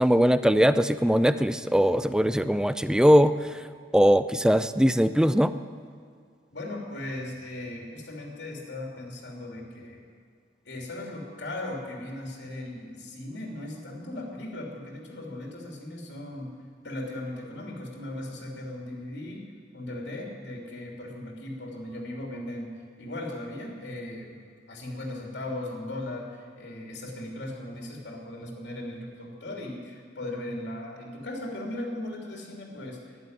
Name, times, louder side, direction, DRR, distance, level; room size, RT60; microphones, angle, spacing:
voice 1, 0.0-3.7 3.9-5.5, equal, 5° right, 12 dB, 0.4 m, -21 dB
voice 2, 6.5-10.0 10.6-16.5 16.8-19.4 19.7-22.7 23.0-24.4 24.7-33.0, left 1 dB, 80° left, 0 dB, 2.9 m, -37 dB
12.5 x 11.0 x 9.5 m, 2.2 s
head